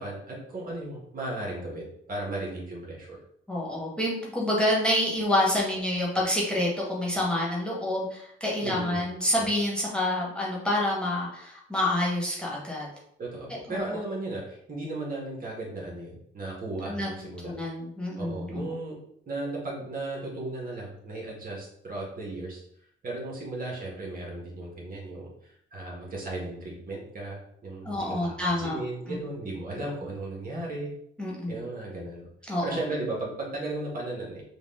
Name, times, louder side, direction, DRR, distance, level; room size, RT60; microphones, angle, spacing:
voice 1, 0.0-3.2 8.6-9.0 9.4-9.5 13.2-17.5 18.2-19.0 19.3-22.6 23.0-30.9 31.5-32.2 32.6-34.5, right 2 dB, 45° right, -3 dB, 1.7 m, -35 dB
voice 2, 3.5-12.9 13.5-14.0 16.9-17.1 17.4-18.7 27.8-28.8 29.1-29.2 31.2-31.6 32.5-32.8, left 1 dB, 5° left, -5 dB, 1.8 m, -28 dB
5.1 x 2.6 x 3.8 m, 0.69 s
cardioid pair, 90°, 20 cm